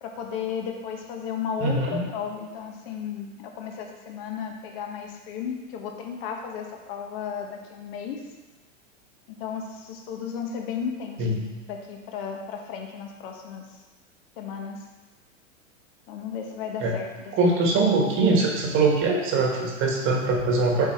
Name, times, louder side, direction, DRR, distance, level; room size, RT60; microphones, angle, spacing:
voice 1, 0.0-8.2 9.3-11.4 11.7-13.8 14.4-14.9 16.1-17.1, left 7 dB, 45° left, 2 dB, 1.0 m, -34 dB
voice 2, 1.6-2.1 11.2-11.5 16.8-17.0 17.3-20.8, right 3 dB, 30° right, 0 dB, 1.4 m, -22 dB
7.9 x 4.1 x 4.4 m, 1.2 s
hypercardioid pair, 130°, 38 cm